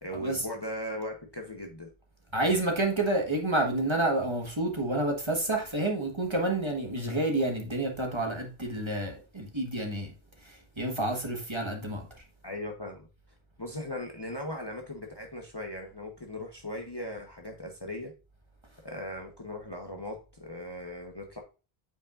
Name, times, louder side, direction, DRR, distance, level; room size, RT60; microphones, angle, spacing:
voice 1, 0.0-1.9 11.5-11.6 12.4-13.1 13.6-18.1 18.8-21.4, left 1 dB, 25° left, 1.0 m, -38 dB
voice 2, 2.3-10.1 10.8-12.1, right 2 dB, 25° right, 1.5 m, -29 dB
8.7 x 5.4 x 2.5 m
omnidirectional pair, 1.0 m